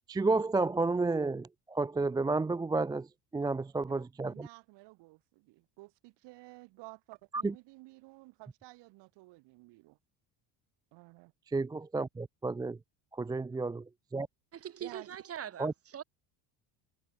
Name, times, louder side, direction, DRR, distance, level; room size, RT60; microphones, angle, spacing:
voice 1, 0.1-3.1 3.3-4.5 7.4-7.5 11.5-12.8 13.2-13.8 14.1-14.3 15.6-15.7, right 3 dB, 10° right, 0.6 m, -31 dB
voice 2, 3.9-10.0 10.9-11.3 14.8-15.1, right 22 dB, 65° right, 5.1 m, -53 dB
voice 3, 14.5-16.0, right 9 dB, 30° right, 7.2 m, -42 dB
cardioid pair, 170°, 44 cm